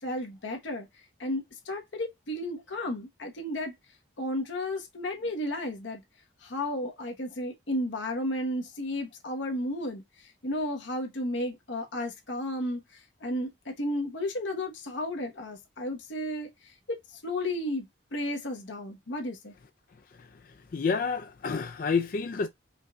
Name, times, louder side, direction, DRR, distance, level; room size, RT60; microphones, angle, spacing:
voice 1, 0.0-0.9 1.2-3.7 4.2-6.0 6.4-19.5, left 1 dB, 80° left, 1.0 m, -33 dB
voice 2, 20.7-22.5, left 5 dB, 50° left, 0.4 m, -28 dB
5.1 x 2.6 x 2.2 m
head